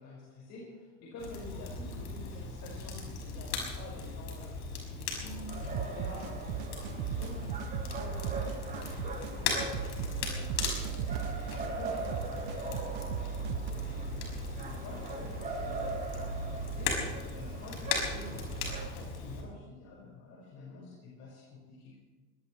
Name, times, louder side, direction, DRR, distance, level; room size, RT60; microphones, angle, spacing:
voice 1, 0.0-7.4 8.0-12.8 13.2-18.4 18.9-22.0, left 2 dB, 50° left, -4 dB, 5.9 m, -49 dB
Crackle, 1.2-19.4, left 4 dB, 80° left, 5.9 m, -38 dB
sound 1, 5.5-18.9, right 4 dB, 20° right, 7.7 m, -39 dB
sound 2, 5.7-13.7, right 14 dB, 60° right, 0.8 m, -39 dB
23.5 x 19.0 x 3.3 m, 1.3 s
supercardioid pair, 135°, 36 cm